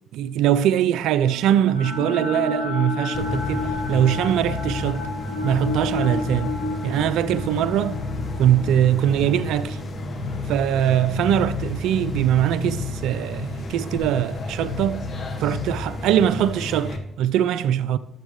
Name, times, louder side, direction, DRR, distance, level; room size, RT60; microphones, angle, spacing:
voice 1, 0.1-5.1 5.4-6.6 6.8-8.0 8.4-9.8 10.5-15.1 15.4-18.0, right 10 dB, 75° right, 0.4 m, -22 dB
sound 1, 1.2-11.4, left 4 dB, 85° left, 1.2 m, -32 dB
sound 2, 3.1-17.0, left 2 dB, 50° left, 1.2 m, -31 dB
12.0 x 7.1 x 3.1 m
hypercardioid pair, 55°, 0 cm